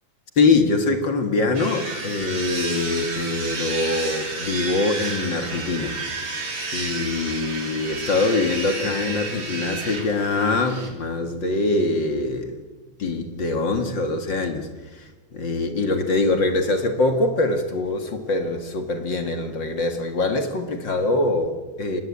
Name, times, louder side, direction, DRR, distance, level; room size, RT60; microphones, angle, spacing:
voice 1, 0.4-6.0 6.7-12.5 13.0-22.0, left 3 dB, 40° left, 6 dB, 2.2 m, -23 dB
sound 1, 1.5-10.9, right 3 dB, 40° right, 4.2 m, -31 dB
26.0 x 20.0 x 8.6 m, 1.3 s
omnidirectional pair, 3.5 m